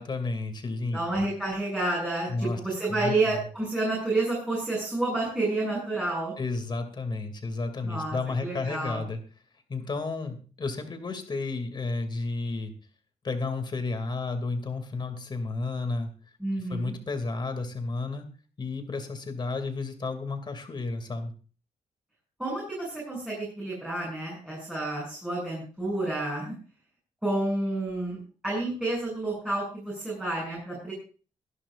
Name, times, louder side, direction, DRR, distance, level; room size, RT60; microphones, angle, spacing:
voice 1, 0.0-1.3 2.3-2.6 2.9-3.4 6.4-9.2 9.7-12.7 13.2-16.1 16.6-18.3 18.6-21.3, left 3 dB, 35° left, 7 dB, 2.6 m, -32 dB
voice 2, 0.9-6.3 7.8-9.0 16.4-16.9 22.4-26.5 27.2-28.2 28.4-30.9, right 2 dB, 5° right, -5 dB, 7.7 m, -30 dB
23.5 x 11.0 x 2.6 m, 0.38 s
wide cardioid pair, 135°, 13 cm